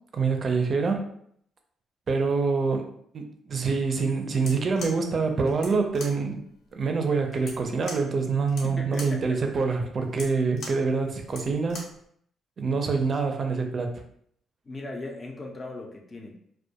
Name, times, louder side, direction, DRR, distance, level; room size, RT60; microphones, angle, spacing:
voice 1, 0.1-1.0 2.1-2.9 3.1-6.4 6.7-11.8 12.6-14.0, right 4 dB, 45° right, 4 dB, 0.4 m, -26 dB
sound 1, 4.3-12.0, left 2 dB, 70° left, 0.7 m, -43 dB
voice 2, 8.6-9.4 14.6-16.4, left 2 dB, 30° left, 1 dB, 0.5 m, -38 dB
2.2 x 2.1 x 2.7 m, 0.67 s
cardioid pair, 90°, 0 cm